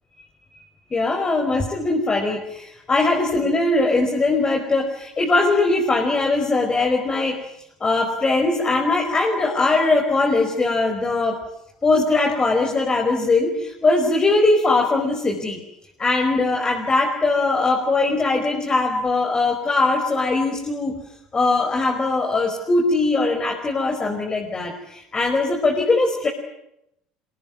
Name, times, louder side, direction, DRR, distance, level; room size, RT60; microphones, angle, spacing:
voice 1, 0.9-7.4 7.8-11.4 11.8-15.6 16.0-20.9 21.3-26.3, left 3 dB, 25° left, 2 dB, 5.2 m, -20 dB
26.5 x 23.0 x 9.5 m, 0.83 s
figure-of-eight pair, 65°, 4 cm